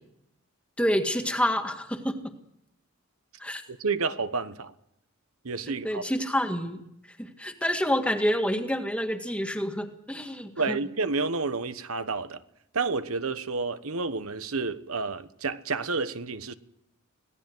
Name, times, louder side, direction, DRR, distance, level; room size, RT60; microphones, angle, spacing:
voice 1, 0.8-2.3 3.4-3.6 5.8-6.8 7.2-10.8, equal, 5° left, 1.9 m, -28 dB
voice 2, 3.7-4.7 5.4-6.0 10.6-12.4 12.7-16.5, right 4 dB, 80° right, 1.2 m, -30 dB
25.5 x 18.0 x 7.9 m
head